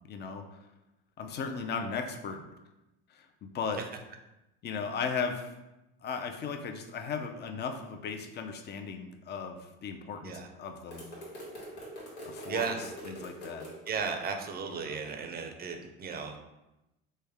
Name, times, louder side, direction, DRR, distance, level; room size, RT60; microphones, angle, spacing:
voice 1, 0.1-0.6 1.2-2.4 3.1-3.8 4.6-5.4 6.0-11.1 12.2-12.7 13.1-13.7 14.7-14.8, left 5 dB, 35° left, 5 dB, 0.5 m, -36 dB
sound 1, 10.9-13.9, equal, 90° left, 1.3 m, -43 dB
voice 2, 12.5-12.8 13.9-16.4, right 5 dB, 30° right, 5 dB, 0.5 m, -35 dB
3.3 x 2.1 x 3.3 m, 0.96 s
supercardioid pair, 90°, 31 cm